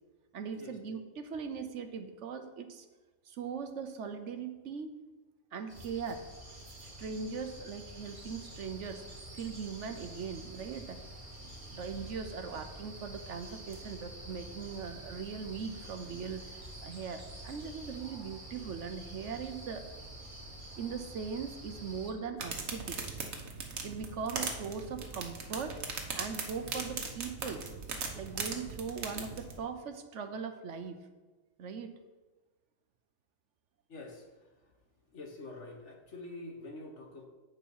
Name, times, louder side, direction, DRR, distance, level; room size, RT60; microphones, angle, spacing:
voice 1, 0.3-2.9 3.3-4.9 5.5-6.2 6.8-9.0 9.3-11.0 11.7-16.5 16.8-19.8 20.8-23.0 23.8-25.8 26.1-27.6 28.1-31.0 31.6-31.9, right 6 dB, 65° right, 8 dB, 1.0 m, -40 dB
sound 1, 5.7-22.1, right 1 dB, 35° right, 1.8 m, -47 dB
sound 2, 22.4-29.6, right 4 dB, 80° right, 1.6 m, -39 dB
voice 2, 33.9-34.3 35.1-37.3, left 2 dB, 60° left, 2 dB, 1.6 m, -46 dB
8.3 x 7.3 x 5.5 m, 1.2 s
omnidirectional pair, 1.4 m